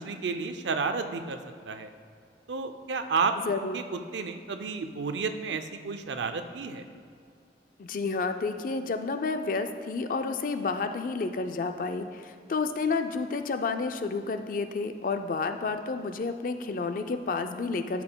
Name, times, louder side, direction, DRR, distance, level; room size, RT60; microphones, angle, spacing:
voice 1, 0.0-1.4 1.7-1.9 2.5-3.8 4.1-6.8, right 4 dB, 85° right, 8 dB, 0.5 m, -31 dB
voice 2, 3.4-3.8 7.8-18.0, left 4 dB, 50° left, 7 dB, 0.4 m, -30 dB
12.0 x 5.9 x 2.2 m, 2.3 s
head